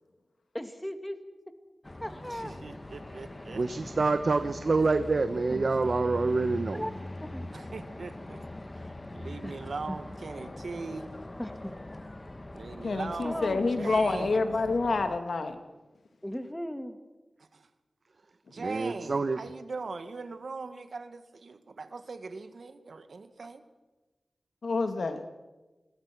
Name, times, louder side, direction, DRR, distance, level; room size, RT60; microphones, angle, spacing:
voice 1, 0.5-1.2 2.0-2.6 5.5-5.7 6.7-6.9 7.3-7.4 9.4-9.5 9.9-10.0 11.4-11.7 13.2-13.7 16.2-17.0, equal, 10° left, 8 dB, 2.4 m, -36 dB
sound 1, 1.8-15.2, left 1 dB, 30° left, 1.5 m, -42 dB
voice 2, 2.3-3.6 7.5-8.5 8.8-11.1 12.5-14.4 17.4-17.7 18.5-23.6, right 4 dB, 80° right, 9 dB, 2.0 m, -40 dB
voice 3, 3.5-6.8 18.6-19.4, right 3 dB, 65° right, 10 dB, 1.1 m, -27 dB
voice 4, 12.8-15.6 24.6-25.2, left 3 dB, 80° left, 8 dB, 2.2 m, -28 dB
28.5 x 21.5 x 6.1 m, 1.2 s
wide cardioid pair, 65°, 0 cm